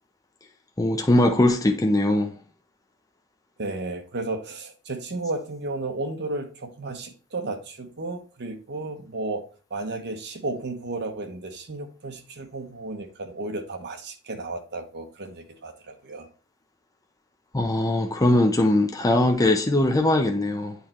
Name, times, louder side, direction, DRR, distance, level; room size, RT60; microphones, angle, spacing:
voice 1, 0.8-2.3 17.5-20.8, left 1 dB, 15° left, 0.6 m, -21 dB
voice 2, 3.6-9.4 9.7-16.3, right 2 dB, 50° right, 1.1 m, -33 dB
8.5 x 3.3 x 4.3 m
head